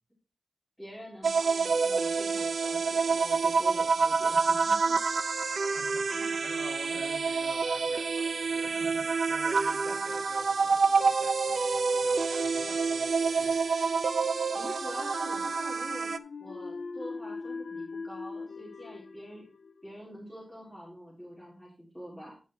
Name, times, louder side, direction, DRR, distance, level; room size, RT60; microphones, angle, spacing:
voice 1, 0.8-5.1 9.9-10.1 14.5-16.1 16.4-19.4 19.8-22.3, equal, ahead, -6 dB, 3.5 m, -45 dB
sound 1, 1.2-16.2, right 4 dB, 75° right, 0.5 m, -28 dB
voice 2, 5.5-14.0, left 1 dB, 20° left, 0 dB, 3.8 m, -48 dB
sound 2, 11.0-20.2, left 4 dB, 85° left, 0.5 m, -42 dB
10.0 x 5.6 x 4.5 m, 0.33 s
wide cardioid pair, 90°, 0 cm